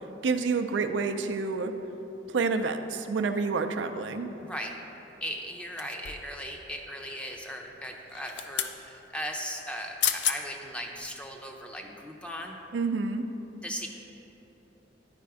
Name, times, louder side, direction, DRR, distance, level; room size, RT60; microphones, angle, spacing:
voice 1, 0.2-1.7 2.3-4.3 12.7-13.3, right 4 dB, 85° right, 7 dB, 0.4 m, -28 dB
voice 2, 4.4-4.8 5.2-12.6 13.6-13.9, equal, 5° left, 2 dB, 0.6 m, -38 dB
sound 1, 5.8-6.4 8.1-8.8 9.7-9.8 10.0-10.4 10.9-11.1, left 9 dB, 70° left, 0.4 m, -30 dB
10.5 x 4.2 x 4.7 m, 3.0 s
head